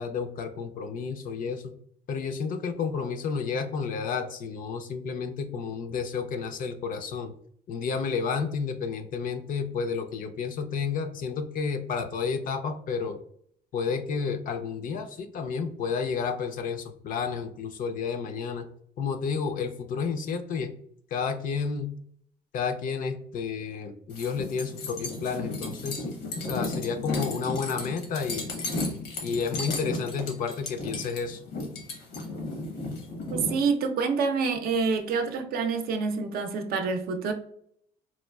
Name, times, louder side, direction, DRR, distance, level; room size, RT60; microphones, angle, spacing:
voice 1, 0.0-1.7 2.1-7.3 7.7-13.2 13.7-18.7 19.0-20.7 21.1-21.9 22.5-28.5 29.2-31.4, left 5 dB, 55° left, 0.4 m, -31 dB
sound 1, 24.1-33.6, left 2 dB, 85° left, 1.0 m, -34 dB
voice 2, 33.3-37.3, right 5 dB, 65° right, 0.5 m, -27 dB
4.1 x 2.3 x 2.2 m
cardioid pair, 110°, 17 cm